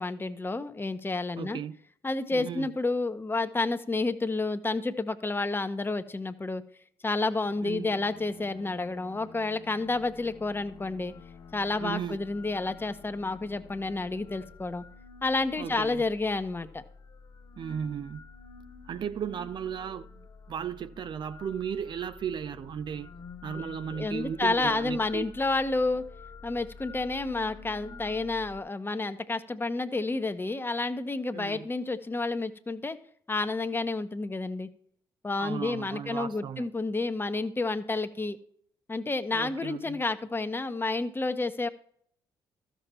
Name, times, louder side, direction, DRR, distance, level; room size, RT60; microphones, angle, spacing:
voice 1, 0.0-1.6 2.0-6.6 7.0-11.1 11.5-14.8 15.2-16.8 23.9-26.0 26.4-33.0 33.3-34.7 35.2-38.4 38.9-41.7, left 3 dB, 25° left, 1.0 m, -30 dB
voice 2, 1.4-1.8 2.3-2.7 7.6-8.0 11.8-12.2 15.6-16.0 17.6-18.2 18.9-23.1 23.4-25.3 31.3-31.7 35.4-36.7 39.3-40.0, right 8 dB, 55° right, 0.4 m, -36 dB
Bowed string instrument, 7.4-15.4, left 7 dB, 80° left, 1.1 m, -53 dB
sound 1, 9.8-28.6, left 4 dB, 40° left, 1.4 m, -50 dB
13.0 x 7.0 x 4.4 m
supercardioid pair, 60°, 9 cm